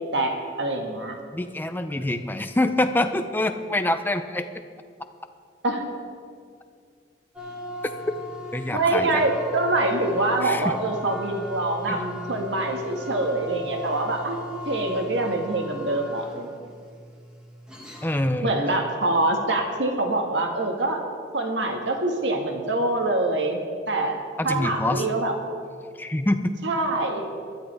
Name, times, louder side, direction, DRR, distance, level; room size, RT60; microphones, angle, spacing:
voice 1, 0.0-1.2 5.6-5.9 8.7-14.4 14.7-16.7 18.4-21.0 21.3-23.6 23.9-24.2 24.4-25.3 26.6-27.3, right 2 dB, 75° right, 2 dB, 1.7 m, -25 dB
voice 2, 1.3-4.5 8.5-9.2 10.4-10.7 11.9-12.0 18.0-18.5 24.4-25.0 26.0-26.5, left 1 dB, 10° left, 8 dB, 0.5 m, -25 dB
sound 1, 7.4-18.3, left 1 dB, 5° right, 1.8 m, -39 dB
20.0 x 12.5 x 3.4 m, 2.2 s
head